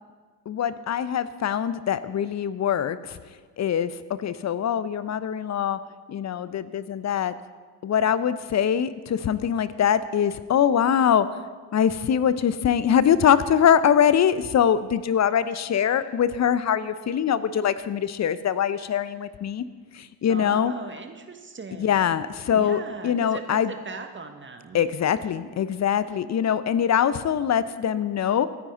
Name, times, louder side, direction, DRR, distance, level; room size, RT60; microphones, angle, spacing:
voice 1, 0.5-3.2 3.6-5.8 6.1-7.3 7.8-11.4 11.7-19.6 19.9-20.7 21.8-23.7 24.7-28.5, left 8 dB, 35° left, 15 dB, 0.9 m, -23 dB
voice 2, 20.3-24.9, right 4 dB, 25° right, 5 dB, 1.8 m, -39 dB
26.0 x 9.9 x 4.0 m, 1.5 s
figure-of-eight pair, 55°, 49 cm